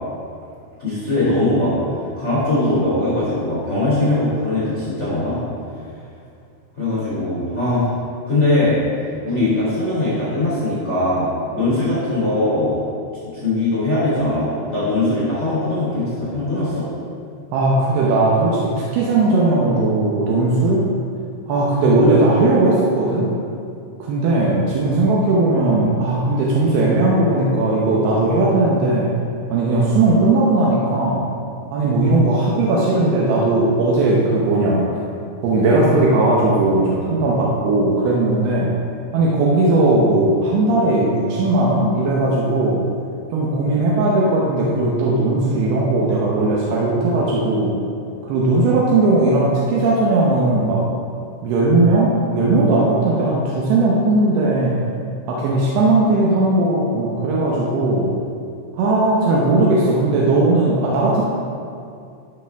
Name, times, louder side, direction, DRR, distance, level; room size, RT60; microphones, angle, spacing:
voice 1, 0.8-1.7 2.2-5.4 6.8-7.9 8.3-8.8 9.2-12.8 13.3-16.8, left 2 dB, 35° left, -10 dB, 1.1 m, -20 dB
voice 2, 17.5-20.9 21.5-23.3 24.0-29.1 29.5-31.2 31.7-34.8 35.4-38.7 39.1-42.8 43.3-47.8 48.2-50.8 51.4-54.8 55.3-58.1 58.7-61.2, right 2 dB, 75° right, -4 dB, 2.4 m, -17 dB
14.0 x 5.5 x 3.5 m, 2.4 s
omnidirectional pair, 5.6 m